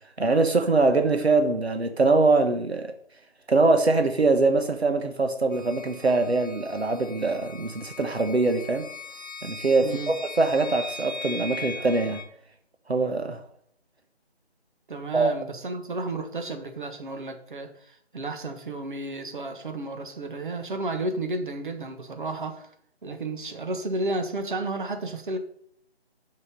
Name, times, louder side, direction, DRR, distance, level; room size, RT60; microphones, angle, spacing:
voice 1, 0.2-2.9 3.5-8.9 9.4-12.2 12.9-13.4 15.1-15.3, right 3 dB, 75° right, 6 dB, 1.3 m, -23 dB
sound 1, 5.5-12.2, left 3 dB, 20° left, 0.9 m, -40 dB
voice 2, 9.8-10.1 14.9-22.7 23.0-25.4, right 2 dB, 50° right, 6 dB, 1.5 m, -32 dB
11.0 x 5.6 x 5.3 m, 0.66 s
figure-of-eight pair, 155°, 32 cm